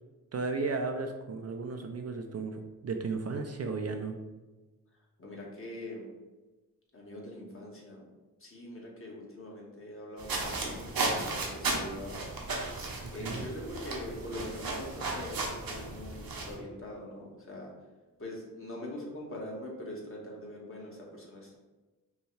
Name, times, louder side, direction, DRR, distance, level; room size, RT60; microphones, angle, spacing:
voice 1, 0.3-4.1 13.0-13.5, right 4 dB, 45° right, 5 dB, 0.4 m, -34 dB
voice 2, 5.2-6.1 6.9-8.0 8.4-10.9 11.3-12.2 13.1-17.7 18.2-21.6, left 1 dB, 35° left, -3 dB, 1.2 m, -43 dB
sound 1, 10.2-16.5, right 3 dB, 75° right, 0.9 m, -35 dB
5.3 x 2.3 x 3.2 m, 1.2 s
cardioid pair, 70°, 36 cm